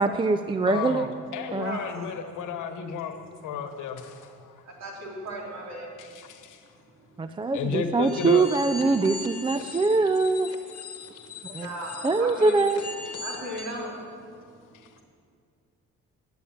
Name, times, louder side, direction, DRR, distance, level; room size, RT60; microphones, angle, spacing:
voice 1, 0.0-1.1 1.5-1.8 7.2-10.5 11.4-11.7 12.0-12.8, right 3 dB, 15° right, 10 dB, 0.4 m, -23 dB
voice 2, 0.7-3.2 3.4-4.6 6.0-6.6 7.5-8.5 14.8-15.0, left 6 dB, 85° left, 7 dB, 1.1 m, -33 dB
voice 3, 1.6-2.0 4.8-5.9 11.6-12.5 13.2-14.0, right 1 dB, 60° right, -2 dB, 3.5 m, -36 dB
sound 1, 8.0-13.8, left 4 dB, 55° left, 1.3 m, -40 dB
10.5 x 7.9 x 9.0 m, 2.2 s
cardioid pair, 90°, 30 cm